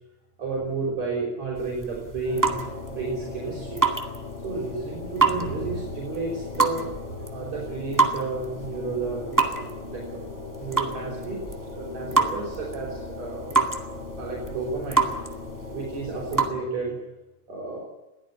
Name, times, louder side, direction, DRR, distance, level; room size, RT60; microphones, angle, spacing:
voice 1, 0.4-3.8 4.4-6.9 7.3-10.2 10.6-11.4 11.7-13.6 14.2-15.1 15.7-17.0 17.5-17.8, right 4 dB, 60° right, -3 dB, 6.6 m, -32 dB
sound 1, 1.6-16.5, right 3 dB, 10° right, 1.3 m, -28 dB
sound 2, 2.2-16.6, left 4 dB, 10° left, 7.9 m, -38 dB
22.0 x 16.0 x 10.0 m, 0.98 s
omnidirectional pair, 3.6 m